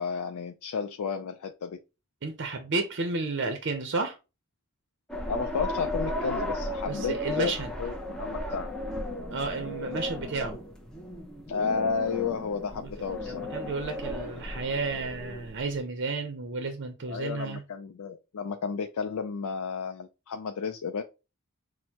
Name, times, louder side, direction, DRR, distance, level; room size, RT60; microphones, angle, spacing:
voice 1, 0.0-1.8 5.3-8.7 11.5-13.5 17.1-21.0, left 5 dB, 75° left, 0.4 m, -32 dB
voice 2, 2.2-4.2 6.9-7.7 9.3-10.6 12.7-12.9 13.2-17.6, right 3 dB, 55° right, 0.6 m, -32 dB
sound 1, 5.1-15.8, left 1 dB, 5° left, 0.6 m, -35 dB
6.2 x 2.1 x 2.8 m
head